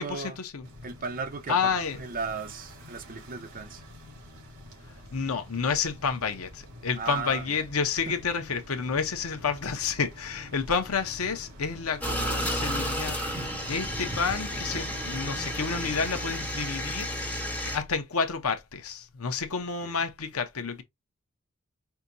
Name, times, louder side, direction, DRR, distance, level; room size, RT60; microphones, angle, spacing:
voice 1, 0.0-0.4 0.8-1.6 1.9-3.8 6.9-7.6 8.1-8.2 19.8-20.0, right 5 dB, 40° right, 0.9 m, -36 dB
sound 1, 0.6-16.1, left 1 dB, 60° right, 2.9 m, -47 dB
voice 2, 1.5-2.0 5.1-17.1 17.7-20.8, left 5 dB, 80° left, 0.9 m, -30 dB
sound 2, 12.0-17.8, equal, 5° left, 1.8 m, -32 dB
5.8 x 2.8 x 2.7 m
head